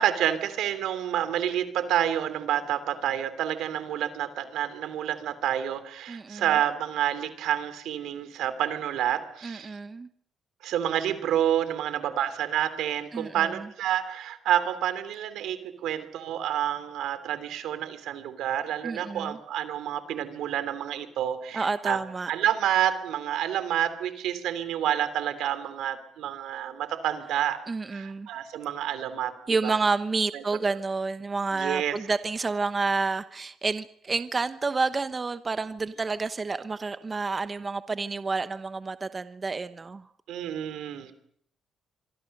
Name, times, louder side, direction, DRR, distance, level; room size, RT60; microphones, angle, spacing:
voice 1, 0.0-9.7 10.6-22.0 22.3-27.6 27.9-29.3 29.6-29.8 30.3-30.4 31.5-32.0 40.3-41.1, right 11 dB, 85° right, 2.9 m, -29 dB
voice 2, 6.1-6.4 9.4-10.1 13.1-13.5 18.8-19.4 21.5-22.3 27.7-28.3 29.5-40.0, right 4 dB, 30° right, 1.0 m, -29 dB
25.5 x 23.5 x 6.7 m
cardioid pair, 90°, 0 cm